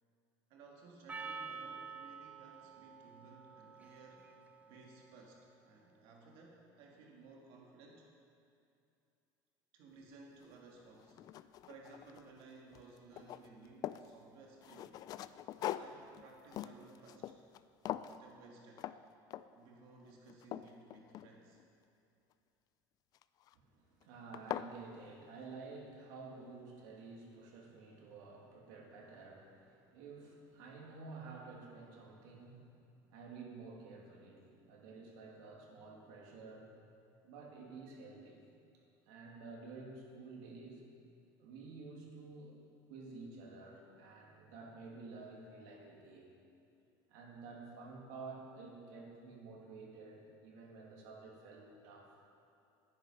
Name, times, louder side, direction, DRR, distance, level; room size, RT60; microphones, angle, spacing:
voice 1, 0.5-4.3 4.6-8.1 9.7-15.0 15.7-17.3 18.0-18.9 19.5-21.6, right 3 dB, 65° right, -1 dB, 1.7 m, -58 dB
Percussion, 1.1-5.7, right 5 dB, 15° right, 0.6 m, -49 dB
sound 1, 10.4-10.5 11.0-12.4 12.7-14.1 14.6-17.6 17.9-18.2 18.8-19.0 19.3-19.7 20.1-21.7 23.1-23.5 24.0-24.1 24.3-24.7, left 12 dB, 40° left, 0.3 m, -43 dB
voice 2, 23.5-32.7 33.1-36.7 37.2-38.4 38.7-40.8 41.4-42.6 42.9-46.3 47.1-52.1, right 3 dB, 80° right, -1 dB, 2.5 m, -51 dB
11.5 x 10.0 x 5.6 m, 2.6 s
cardioid pair, 145°, 10 cm